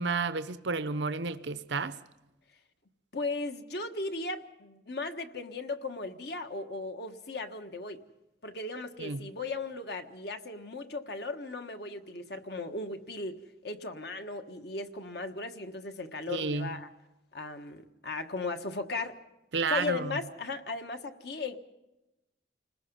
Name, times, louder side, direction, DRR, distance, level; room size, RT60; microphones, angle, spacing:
voice 1, 0.0-2.0 9.0-9.3 16.3-16.7 19.5-20.1, right 4 dB, 70° right, 0.8 m, -31 dB
voice 2, 3.1-8.0 8.4-16.9 17.3-19.2 19.7-21.6, left 3 dB, 60° left, 1.5 m, -37 dB
29.5 x 20.5 x 5.5 m
head